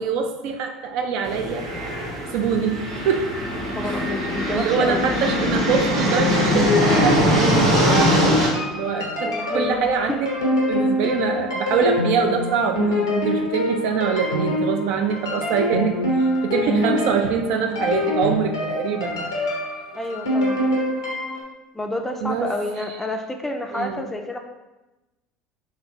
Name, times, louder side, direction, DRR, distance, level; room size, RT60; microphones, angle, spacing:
voice 1, 0.0-1.6 2.3-3.3 3.8-3.9 4.5-10.3 10.7-12.8 13.2-16.0 16.4-19.3 22.2-22.5 23.7-24.1, right 6 dB, 60° right, 4 dB, 0.4 m, -24 dB
sound 1, 1.2-8.5, equal, 80° right, 1.0 m, -22 dB
voice 2, 3.6-5.0 9.2-10.2 19.9-20.6 21.7-24.4, left 2 dB, 10° left, 3 dB, 0.4 m, -29 dB
sound 2, 6.1-21.4, left 1 dB, 90° left, 0.7 m, -25 dB
3.1 x 2.9 x 2.7 m, 1.0 s
hypercardioid pair, 70°, 2 cm